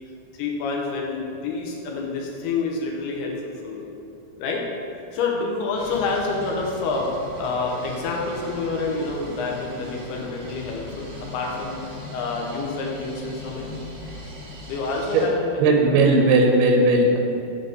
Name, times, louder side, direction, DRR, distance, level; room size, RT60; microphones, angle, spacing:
voice 1, 0.4-3.9 4.4-4.6 5.1-7.1 7.4-13.7 14.7-15.6, left 3 dB, 90° left, -1 dB, 3.0 m, -28 dB
sound 1, 5.8-15.3, left 2 dB, 45° right, 2.1 m, -39 dB
voice 2, 15.6-17.2, right 2 dB, 85° right, 2 dB, 2.9 m, -17 dB
8.6 x 4.1 x 5.2 m, 2.8 s
omnidirectional pair, 4.5 m